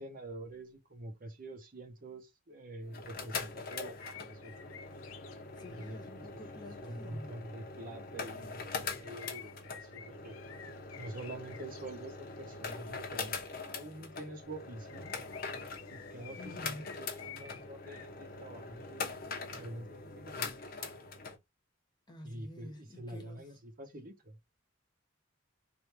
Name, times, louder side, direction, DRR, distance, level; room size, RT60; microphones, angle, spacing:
voice 1, 0.0-4.7 5.7-6.3 6.8-10.3 11.0-15.2 15.9-19.2 19.5-20.9 22.2-24.4, right 1 dB, 45° right, 0.8 m, -46 dB
sound 1, 2.8-21.4, left 4 dB, 45° left, 0.9 m, -43 dB
sound 2, 3.7-5.9 6.3-6.7 7.1-7.5 8.0-13.1 14.1-14.6 14.9-18.1 18.6-18.9, left 8 dB, 90° left, 0.5 m, -53 dB
voice 2, 5.5-7.3 16.4-17.0 22.1-23.5, left 1 dB, 20° left, 1.1 m, -49 dB
3.3 x 2.7 x 4.3 m
head